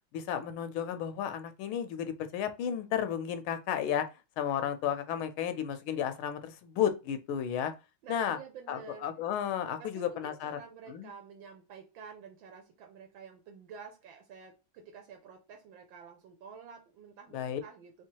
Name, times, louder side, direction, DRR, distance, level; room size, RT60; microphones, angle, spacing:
voice 1, 0.1-4.1 4.4-7.7 8.1-8.4 8.7-10.6 10.9-11.1 17.3-17.6, left 9 dB, 90° left, 1.5 m, -33 dB
voice 2, 8.0-9.1 9.8-18.1, right 6 dB, 75° right, 1.4 m, -50 dB
3.6 x 3.3 x 2.8 m
omnidirectional pair, 2.2 m